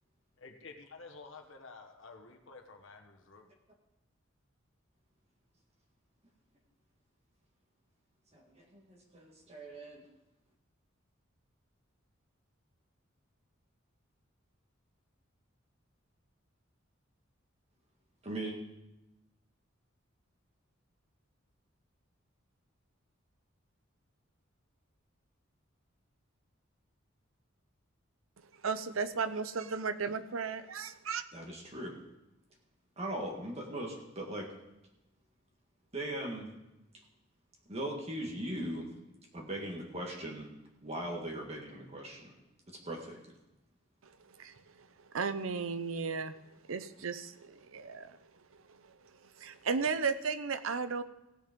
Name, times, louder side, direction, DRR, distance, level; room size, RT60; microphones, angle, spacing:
voice 1, 0.4-3.5, left 4 dB, 70° left, 4 dB, 1.3 m, -51 dB
voice 2, 8.3-10.0 18.2-18.6 31.3-32.0 33.0-34.5 35.9-36.5 37.7-38.9 39.3-40.5 40.8-42.3 42.7-43.4, right 1 dB, 30° right, 0 dB, 1.8 m, -39 dB
voice 3, 28.6-31.2 44.0-44.1 44.4-44.9 45.1-46.3 46.7-48.2 48.7-48.8 49.4-51.0, right 5 dB, 80° right, 12 dB, 0.7 m, -35 dB
17.0 x 7.0 x 5.2 m, 0.94 s
head